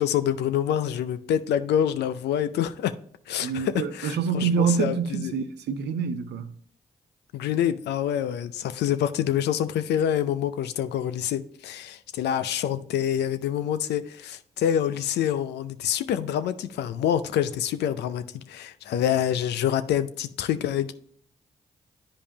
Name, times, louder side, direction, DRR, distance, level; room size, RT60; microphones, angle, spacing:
voice 1, 0.0-2.9 3.3-5.3 7.3-20.9, left 10 dB, 85° left, 0.4 m, -26 dB
voice 2, 3.4-6.5, right 6 dB, 85° right, 0.6 m, -26 dB
8.6 x 5.2 x 2.8 m
supercardioid pair, 45°, 17 cm